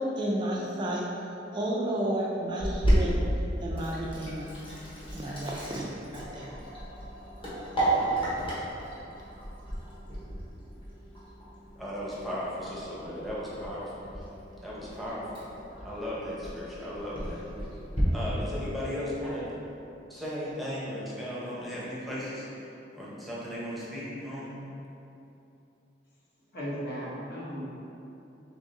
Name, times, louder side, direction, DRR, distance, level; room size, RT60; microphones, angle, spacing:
voice 1, 0.0-3.2 3.6-4.5 5.1-5.9 6.1-6.5 7.8-7.9, right 1 dB, 25° right, -4 dB, 0.4 m, -32 dB
Sink (filling or washing), 2.6-18.0, right 1 dB, 30° left, 1.1 m, -33 dB
voice 2, 11.8-14.2 14.6-15.5 15.8-17.5 18.1-19.5 20.1-24.6, equal, ahead, -8 dB, 0.8 m, -36 dB
voice 3, 26.5-27.7, equal, 55° left, -7 dB, 1.1 m, -36 dB
3.6 x 3.4 x 3.9 m, 2.9 s
head